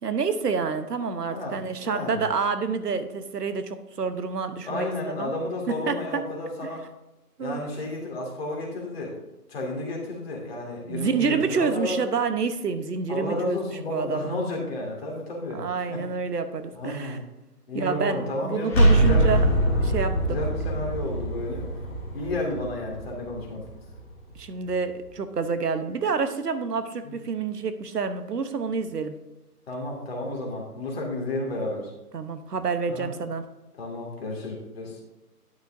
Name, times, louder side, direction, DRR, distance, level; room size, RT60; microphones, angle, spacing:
voice 1, 0.0-4.9 5.2-5.3 5.7-6.2 6.6-6.7 7.4-7.6 10.9-14.2 15.5-17.2 17.7-19.5 19.8-20.4 24.3-29.2 32.1-33.4, right 5 dB, 85° right, 10 dB, 1.1 m, -28 dB
voice 2, 1.3-2.2 4.7-6.8 7.4-9.1 9.5-12.0 13.1-16.0 16.7-17.2 17.7-19.4 20.3-21.8 22.1-23.6 27.0-27.1 29.7-31.9 32.9-33.1 33.8-35.0, left 2 dB, 40° left, -1 dB, 2.4 m, -32 dB
sound 1, 18.7-24.4, right 1 dB, 10° left, 1.2 m, -23 dB
11.5 x 6.3 x 2.7 m, 1.0 s
hypercardioid pair, 165°, 47 cm